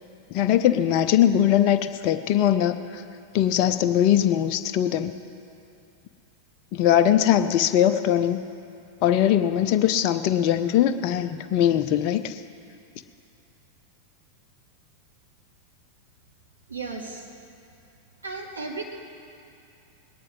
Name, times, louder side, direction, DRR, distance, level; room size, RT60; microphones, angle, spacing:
voice 1, 0.3-3.0 3.3-5.1 6.7-8.4 9.0-12.4, left 10 dB, 40° left, 9 dB, 0.6 m, -21 dB
voice 2, 16.7-17.3 18.2-18.8, right 4 dB, 75° right, -1 dB, 2.0 m, -34 dB
20.0 x 10.0 x 4.8 m, 2.6 s
figure-of-eight pair, 90°, 0 cm